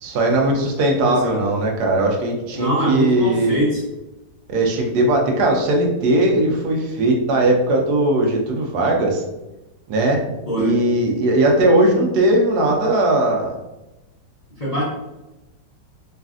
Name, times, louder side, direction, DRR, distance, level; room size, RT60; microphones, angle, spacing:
voice 1, 0.0-3.7 4.5-9.2 9.9-10.2 10.6-13.5, right 1 dB, 75° right, 1 dB, 1.1 m, -18 dB
voice 2, 1.0-1.4 2.5-3.8 10.5-10.8 14.6-14.8, equal, 80° left, -8 dB, 0.3 m, -22 dB
3.1 x 2.4 x 2.4 m, 0.99 s
omnidirectional pair, 1.8 m